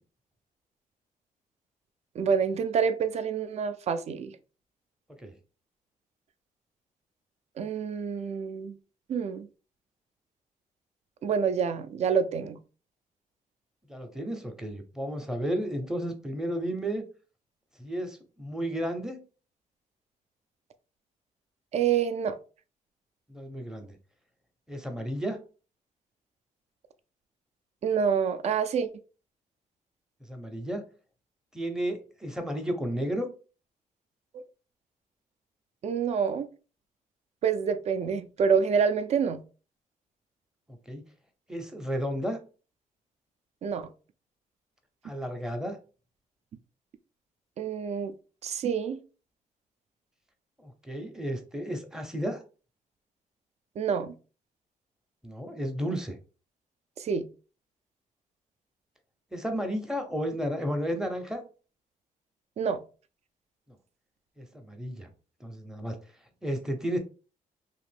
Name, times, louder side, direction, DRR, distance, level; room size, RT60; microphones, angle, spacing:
voice 1, 2.2-4.4 7.6-8.7 9.1-9.5 11.2-12.6 21.7-22.4 27.8-28.9 34.3-34.4 35.8-36.5 37.4-39.4 43.6-43.9 47.6-48.1 48.4-49.0 53.8-54.1 57.0-57.3 62.6-62.8, right 6 dB, 50° right, 0.4 m, -27 dB
voice 2, 13.9-17.0 17.8-19.2 23.3-24.0 24.7-25.4 30.3-30.8 31.5-33.3 40.9-41.0 41.5-42.4 45.0-45.8 50.6-52.4 55.2-56.2 59.3-61.4 64.4-65.1 65.4-66.0 66.4-67.0, equal, 5° right, 0.6 m, -32 dB
3.0 x 2.5 x 3.3 m
cardioid pair, 125°, 14 cm